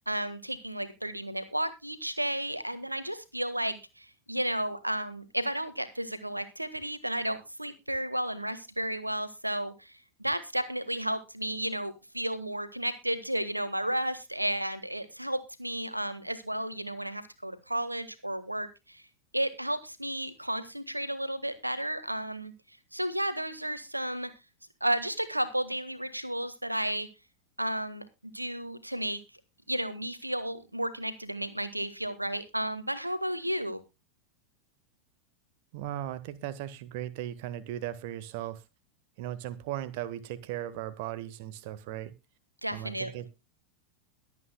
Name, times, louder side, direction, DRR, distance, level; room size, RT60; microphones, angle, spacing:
voice 1, 0.1-19.0 19.3-22.5 22.9-24.3 24.8-27.1 27.6-29.2 29.7-33.8 42.6-43.3, right 1 dB, 85° right, 12 dB, 1.5 m, -33 dB
voice 2, 35.7-38.6 39.2-42.1 42.7-43.3, right 12 dB, 50° right, 15 dB, 1.1 m, -37 dB
22.0 x 8.5 x 2.2 m, 0.25 s
figure-of-eight pair, 90°, 0 cm